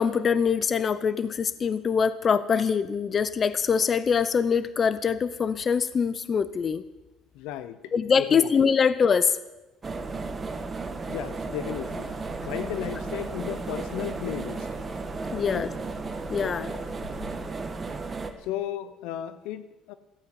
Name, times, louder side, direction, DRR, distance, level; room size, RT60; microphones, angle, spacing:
voice 1, 0.0-6.8 7.9-9.4 15.3-15.7 16.3-16.7, left 6 dB, 35° left, 15 dB, 0.8 m, -24 dB
voice 2, 7.3-7.9 8.3-8.5 11.1-12.1 12.5-14.7 15.3-15.7 16.3-16.6 18.4-19.9, left 11 dB, 80° left, 13 dB, 0.9 m, -35 dB
sound 1, 9.8-18.3, right 3 dB, 25° right, 1.6 m, -34 dB
sound 2, 11.7-17.3, left 2 dB, 55° left, 6.5 m, -49 dB
15.0 x 8.6 x 9.3 m, 1.1 s
supercardioid pair, 100°, 0 cm